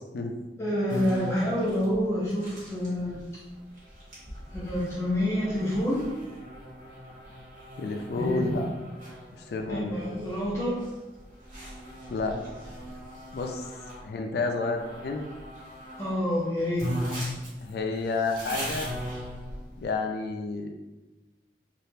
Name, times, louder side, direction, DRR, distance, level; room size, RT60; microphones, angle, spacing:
voice 1, 0.6-3.2 4.5-6.0 8.2-8.6 9.7-10.8 16.0-16.9, left 1 dB, 15° left, -7 dB, 0.8 m, -27 dB
sound 1, 0.9-14.0 14.7-16.2 16.4-16.5 16.8-19.9, equal, 50° right, 1.2 m, -39 dB
voice 2, 7.8-8.7 9.3-9.9 12.1-12.4 13.3-13.6 14.0-15.2 17.6-18.9 19.8-20.7, left 3 dB, 60° left, 3 dB, 0.3 m, -30 dB
3.5 x 2.4 x 2.7 m, 1.1 s
head